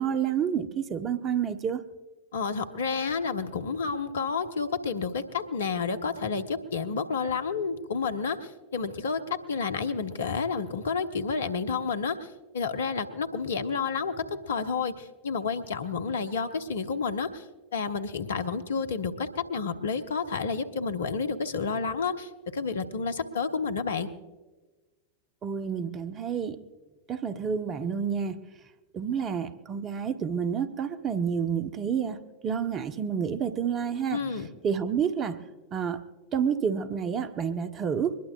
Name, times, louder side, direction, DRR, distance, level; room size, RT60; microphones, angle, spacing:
voice 1, 0.0-1.8 25.4-26.6 27.1-28.4 28.9-34.2 34.6-35.4 35.7-36.0 36.3-38.2, right 7 dB, 30° right, 10 dB, 0.8 m, -29 dB
voice 2, 2.3-12.3 12.5-17.4 17.7-24.1 34.1-34.5, left 5 dB, 65° left, 9 dB, 0.9 m, -30 dB
22.5 x 20.5 x 2.4 m, 1.2 s
figure-of-eight pair, 90°, 0 cm